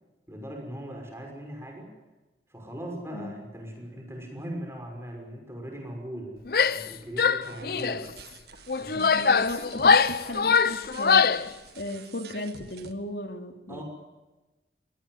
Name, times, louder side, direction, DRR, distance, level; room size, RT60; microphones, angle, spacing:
voice 1, 0.3-1.9 2.5-8.2 8.8-9.0 13.7-13.8, equal, 15° right, 2 dB, 5.9 m, -39 dB
Female speech woman speaking / Yell, 6.5-6.9 7.2-8.0 8.7-11.5, left 5 dB, 55° left, 0.7 m, -22 dB
sound 1, 7.4-12.9, right 4 dB, 65° right, 1.7 m, -47 dB
voice 2, 9.0-11.5 11.8-13.8, left 1 dB, 75° left, 5 dB, 2.8 m, -36 dB
23.5 x 18.5 x 9.5 m, 1.1 s
head